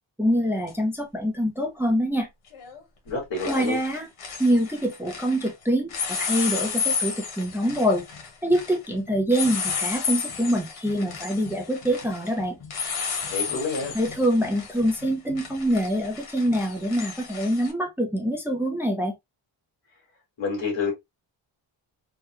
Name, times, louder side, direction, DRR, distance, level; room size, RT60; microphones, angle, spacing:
voice 1, 0.2-2.3 3.4-4.1 4.4-8.0 8.4-12.6 13.9-19.1, equal, 5° right, 0.5 m, -25 dB
sound 1, 0.7-0.8 2.5-2.8 3.1-5.5 5.9-17.7, left 5 dB, 85° left, 1.2 m, -32 dB
voice 2, 3.1-3.8 13.2-13.9 20.4-20.9, left 4 dB, 60° left, 1.8 m, -28 dB
3.3 x 2.2 x 2.9 m
wide cardioid pair, 150°, 48 cm